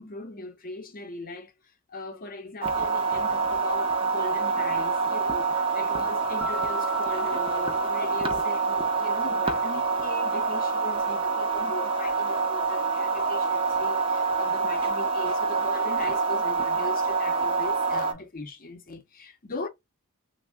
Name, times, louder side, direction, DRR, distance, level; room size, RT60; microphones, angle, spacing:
voice 1, 0.0-1.5 1.9-19.7, left 2 dB, 40° left, 0.7 m, -39 dB
sound 1, 2.6-18.1, right 4 dB, 25° right, 0.5 m, -26 dB
Mallet percussion, 6.4-8.8, left 1 dB, 5° left, 0.8 m, -37 dB
3.5 x 2.0 x 3.3 m
head